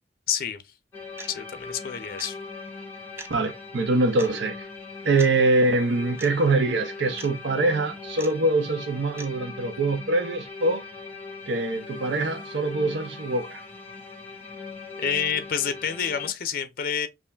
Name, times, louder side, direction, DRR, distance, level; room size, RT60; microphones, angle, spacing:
voice 1, 0.3-0.6 1.3-2.4 15.0-17.1, left 8 dB, 55° left, 0.5 m, -28 dB
sound 1, 0.9-16.3, left 4 dB, 15° left, 1.5 m, -40 dB
sound 2, 1.2-1.3 2.2-2.3 3.2-3.3 4.2-4.4 5.2-5.4 6.2-6.3 7.2-7.3 8.2-8.4 9.2-9.3, right 2 dB, 15° right, 0.5 m, -40 dB
voice 2, 3.3-4.7 5.0-10.8 11.5-13.6, right 2 dB, 80° right, 0.6 m, -24 dB
5.5 x 2.4 x 2.2 m
head